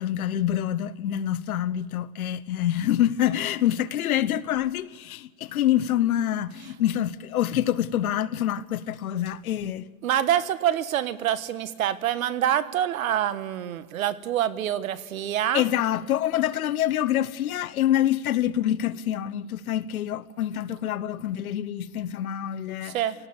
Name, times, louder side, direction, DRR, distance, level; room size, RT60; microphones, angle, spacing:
voice 1, 0.0-9.9 15.5-23.0, left 11 dB, 75° left, 1.0 m, -26 dB
voice 2, 10.0-15.6 22.8-23.1, right 11 dB, 65° right, 1.4 m, -26 dB
25.5 x 18.5 x 7.1 m
supercardioid pair, 160°, 44 cm